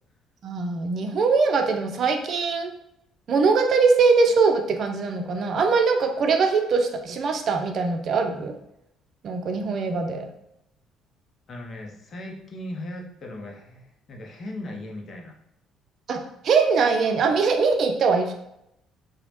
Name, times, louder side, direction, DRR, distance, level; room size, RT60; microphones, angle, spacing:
voice 1, 0.4-2.7 3.3-8.6 9.2-10.3 16.1-18.3, right 4 dB, 55° right, 5 dB, 0.4 m, -22 dB
voice 2, 11.5-15.3, left 1 dB, 50° left, 1 dB, 0.6 m, -38 dB
2.9 x 2.0 x 2.9 m, 0.81 s
hypercardioid pair, 50°, 0 cm